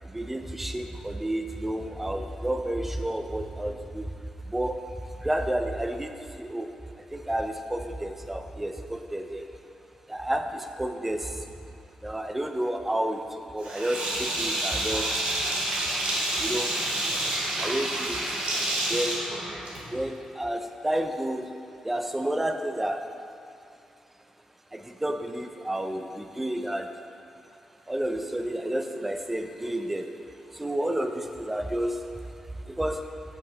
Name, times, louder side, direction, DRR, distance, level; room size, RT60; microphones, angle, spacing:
voice 1, 0.1-4.1 4.5-4.8 5.2-6.7 7.1-9.4 10.1-11.3 12.0-13.2 13.5-15.1 16.4-16.7 17.6-18.2 18.9-19.2 19.9-21.5 21.8-23.0 24.7-26.9 27.9-30.1 30.5-32.0 32.7-33.0, right 1 dB, 10° right, 6 dB, 0.4 m, -30 dB
Sink (filling or washing), 13.6-20.0, right 1 dB, 80° right, 1.2 m, -29 dB
7.5 x 5.5 x 3.8 m, 2.6 s
wide cardioid pair, 125°, 2 cm